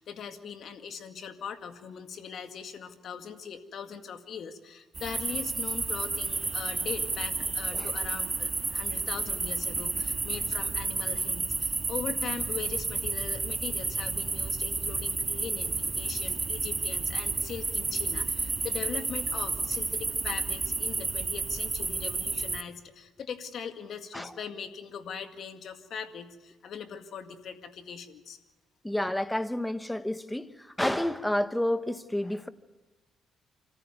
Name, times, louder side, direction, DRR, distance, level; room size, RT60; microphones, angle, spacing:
voice 1, 0.0-28.4, left 7 dB, 65° left, 7 dB, 2.0 m, -40 dB
sound 1, 4.9-22.6, right 3 dB, 25° right, 1.4 m, -31 dB
voice 2, 28.8-30.5 30.8-32.5, left 1 dB, 5° left, 11 dB, 1.2 m, -29 dB
27.0 x 14.5 x 9.4 m, 1.2 s
cardioid pair, 90°, 0 cm